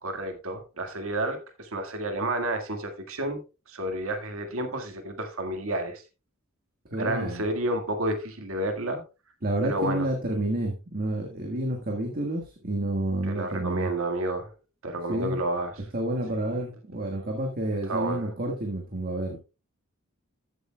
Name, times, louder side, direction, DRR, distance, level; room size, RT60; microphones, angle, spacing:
voice 1, 0.0-3.4 3.7-6.0 7.0-9.0 9.6-10.1 13.3-14.5 14.8-15.8 16.4-16.6 17.7-18.3, right 1 dB, 65° right, 1.9 m, -30 dB
voice 2, 6.9-7.4 9.4-13.9 15.1-15.4 15.9-19.4, right 1 dB, 45° right, 1.6 m, -29 dB
14.0 x 8.1 x 2.3 m
head